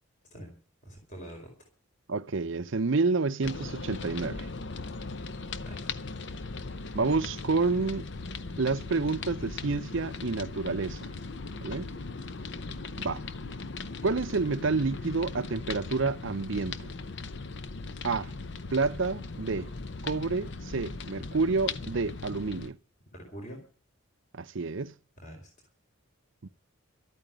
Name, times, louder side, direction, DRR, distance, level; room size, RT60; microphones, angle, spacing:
voice 1, 0.8-1.5 5.6-5.9 12.4-12.8 23.1-23.6 25.2-25.5, equal, 35° left, 4.9 m, -45 dB
voice 2, 2.1-4.5 6.9-8.1 8.6-11.1 11.6-11.9 13.0-13.2 14.0-16.9 18.0-18.3 18.7-19.7 20.0-22.8 24.3-24.9 26.4-26.5, right 4 dB, 65° right, 0.6 m, -29 dB
sound 1, 3.4-22.7, left 3 dB, 55° left, 0.7 m, -39 dB
13.0 x 9.1 x 9.1 m
head